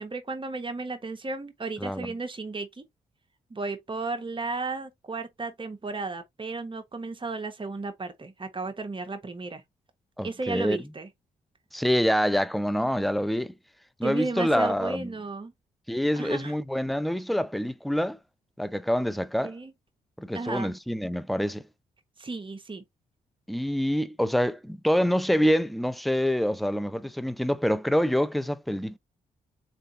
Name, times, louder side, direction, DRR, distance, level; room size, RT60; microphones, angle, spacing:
voice 1, 0.0-2.8 3.5-9.6 10.2-11.1 14.0-15.5 16.1-16.5 19.4-19.7 20.3-20.7 22.2-22.8, right 3 dB, 30° right, 1.2 m, -34 dB
voice 2, 1.8-2.1 10.2-10.8 11.7-13.5 14.0-15.1 15.9-18.2 18.6-19.5 20.2-21.6 23.5-29.0, equal, ahead, 0.6 m, -26 dB
3.9 x 3.4 x 2.6 m
supercardioid pair, 50°, 17 cm